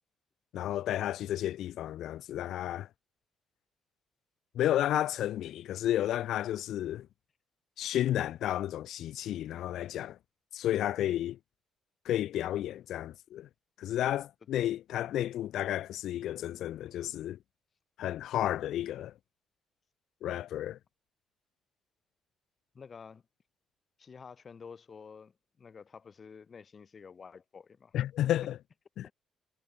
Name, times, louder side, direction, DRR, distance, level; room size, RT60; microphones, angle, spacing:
voice 1, 0.5-2.9 4.5-7.1 7.8-10.2 10.5-11.4 12.1-13.5 13.8-17.4 18.0-19.1 20.2-20.8 27.9-28.6 29.0-29.1, left 12 dB, 80° left, 0.3 m, -32 dB
voice 2, 22.7-23.2 24.0-27.9 29.0-29.1, left 6 dB, 40° left, 4.6 m, -50 dB
cardioid pair, 90°, 0 cm